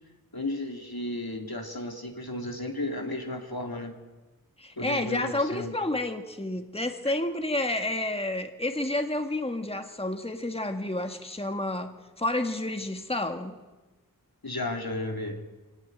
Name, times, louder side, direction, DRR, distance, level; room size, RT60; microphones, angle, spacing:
voice 1, 0.3-3.9 4.8-5.7 14.4-15.4, left 1 dB, 75° left, 2 dB, 3.0 m, -34 dB
voice 2, 4.6-13.6, left 1 dB, 15° left, 5 dB, 1.7 m, -30 dB
26.0 x 17.5 x 9.3 m, 1.2 s
wide cardioid pair, 40°, 37 cm